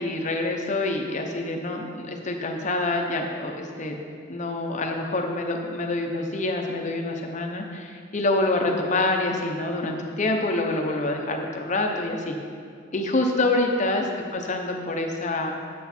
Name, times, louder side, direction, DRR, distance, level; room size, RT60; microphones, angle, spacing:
voice 1, 0.0-4.0 4.3-12.4 12.9-15.7, left 2 dB, 35° left, 2 dB, 0.8 m, -26 dB
9.1 x 8.2 x 4.3 m, 2.2 s
head